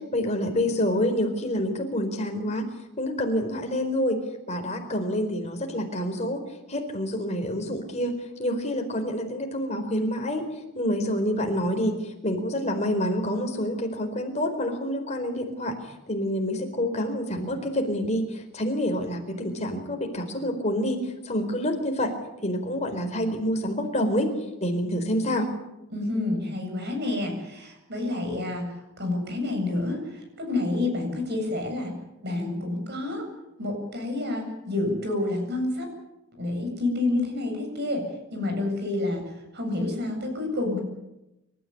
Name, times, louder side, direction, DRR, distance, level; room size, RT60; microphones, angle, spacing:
voice 1, 0.1-2.7 3.0-4.2 4.5-6.4 6.7-10.5 10.7-22.1 22.4-24.3 24.6-25.5, equal, 30° left, 4 dB, 4.4 m, -27 dB
voice 2, 25.9-31.9 32.2-33.3 33.6-35.9 36.4-40.8, left 2 dB, 50° right, 4 dB, 8.0 m, -29 dB
28.5 x 14.0 x 9.7 m, 0.94 s
head